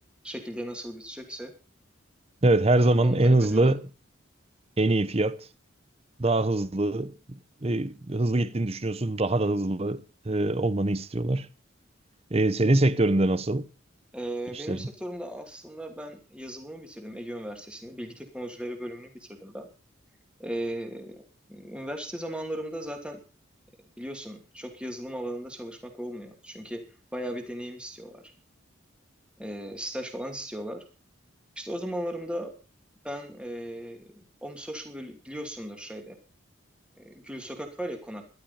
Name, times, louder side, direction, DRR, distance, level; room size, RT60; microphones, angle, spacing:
voice 1, 0.2-1.5 2.7-3.7 14.1-19.7 20.4-21.2 21.5-23.2 24.0-26.8 27.1-28.2 29.4-30.8 31.6-32.5 33.0-36.2 37.0-38.2, equal, 5° right, 2.7 m, -37 dB
voice 2, 2.4-3.8 4.8-5.5 6.2-11.5 12.3-13.7 14.5-14.9, right 2 dB, 30° right, 0.8 m, -24 dB
13.5 x 12.0 x 5.6 m
head